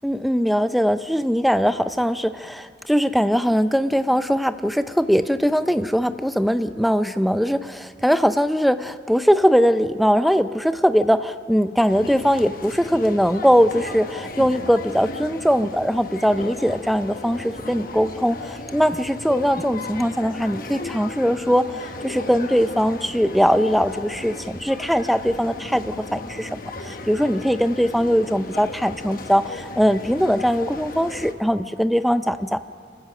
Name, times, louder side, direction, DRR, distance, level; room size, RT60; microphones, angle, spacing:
voice 1, 0.0-26.5 26.8-32.6, equal, ahead, 11 dB, 0.4 m, -21 dB
sound 1, 11.9-31.3, left 2 dB, 50° left, 1.1 m, -36 dB
27.0 x 15.0 x 6.6 m, 2.4 s
head